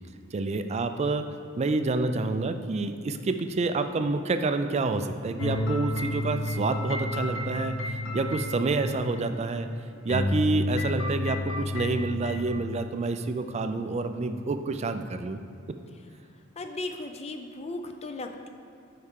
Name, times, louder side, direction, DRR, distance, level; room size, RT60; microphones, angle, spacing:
voice 1, 0.3-9.7 10.0-15.4, right 3 dB, 30° right, 8 dB, 0.3 m, -28 dB
sound 1, 5.4-9.7 10.1-12.7, left 1 dB, 65° left, 0.7 m, -31 dB
voice 2, 16.6-18.5, left 2 dB, 30° left, 6 dB, 0.5 m, -36 dB
9.7 x 4.7 x 3.7 m, 2.4 s
head